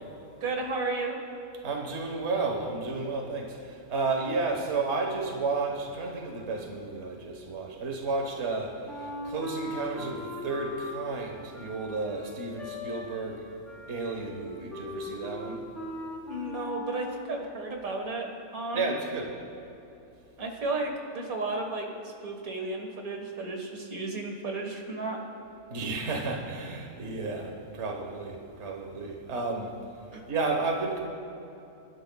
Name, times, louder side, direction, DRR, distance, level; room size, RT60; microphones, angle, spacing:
voice 1, 0.4-1.2 16.3-19.0 20.4-25.2 30.1-30.2, right 2 dB, 70° right, 1 dB, 1.9 m, -33 dB
voice 2, 1.6-13.4 13.9-15.6 18.7-19.3 25.7-29.7 30.3-31.0, right 3 dB, 50° right, 1 dB, 1.5 m, -32 dB
Wind instrument woodwind instrument, 8.9-17.3, left 2 dB, ahead, 2.9 m, -39 dB
26.0 x 12.0 x 2.3 m, 2.9 s
omnidirectional pair, 1.6 m